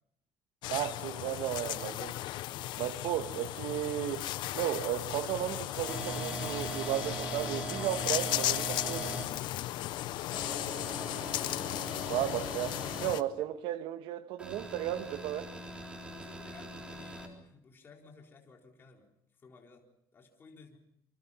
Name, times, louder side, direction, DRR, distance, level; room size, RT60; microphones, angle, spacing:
sound 1, 0.6-13.2, left 15 dB, 65° left, 1.0 m, -36 dB
voice 1, 0.7-2.2 2.8-4.2 4.5-9.1 12.1-15.5, right 13 dB, 75° right, 1.7 m, -34 dB
sound 2, 5.8-9.2 10.3-13.1 14.4-17.3, right 2 dB, 10° right, 3.8 m, -41 dB
voice 2, 16.1-19.1 19.4-19.9 20.1-20.8, left 4 dB, 25° left, 4.1 m, -56 dB
28.0 x 24.5 x 5.7 m
cardioid pair, 150°, 8 cm